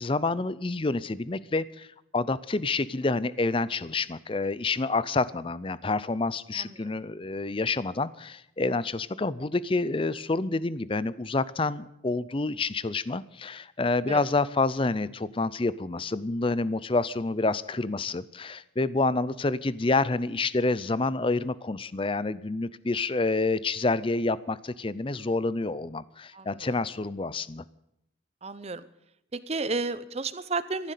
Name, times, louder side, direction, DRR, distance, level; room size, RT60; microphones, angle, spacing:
voice 1, 0.0-1.9 2.1-27.6, left 3 dB, 25° left, 18 dB, 0.5 m, -28 dB
voice 2, 26.3-26.7 28.4-28.8 29.3-30.9, right 3 dB, 30° right, 14 dB, 0.8 m, -32 dB
14.0 x 11.5 x 8.3 m, 0.80 s
head